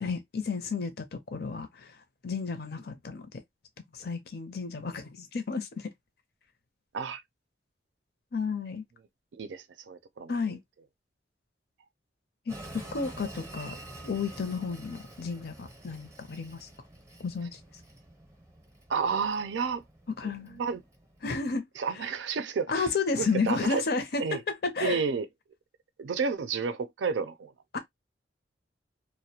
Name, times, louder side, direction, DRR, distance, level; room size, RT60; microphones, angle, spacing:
voice 1, 0.0-1.9 2.2-3.3 3.9-5.9 8.3-8.8 10.3-10.6 12.5-12.6 12.9-13.7 14.0-16.7 17.2-17.5 20.2-20.6 21.2-21.7 22.7-25.0 27.7-27.8, left 4 dB, 60° left, 0.6 m, -32 dB
voice 2, 9.4-10.4 18.9-19.8 20.2-20.8 21.8-22.9 23.2-23.8 24.2-24.4 24.8-25.3 26.0-27.5, right 5 dB, 85° right, 0.4 m, -31 dB
Train, 12.5-21.5, right 1 dB, 15° right, 0.6 m, -48 dB
2.4 x 2.1 x 2.7 m
head